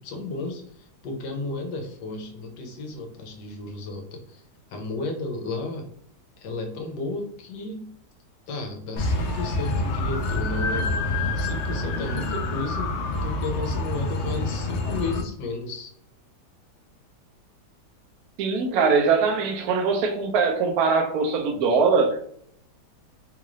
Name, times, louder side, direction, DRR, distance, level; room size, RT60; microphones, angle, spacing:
voice 1, 0.0-4.4 4.7-5.9 6.4-7.9 8.5-15.9, left 2 dB, 85° left, 1.4 m, -33 dB
sound 1, 9.0-15.2, left 2 dB, 65° left, 0.7 m, -27 dB
voice 2, 18.4-22.2, right 5 dB, 70° right, 1.1 m, -22 dB
3.6 x 2.5 x 3.0 m
omnidirectional pair, 1.8 m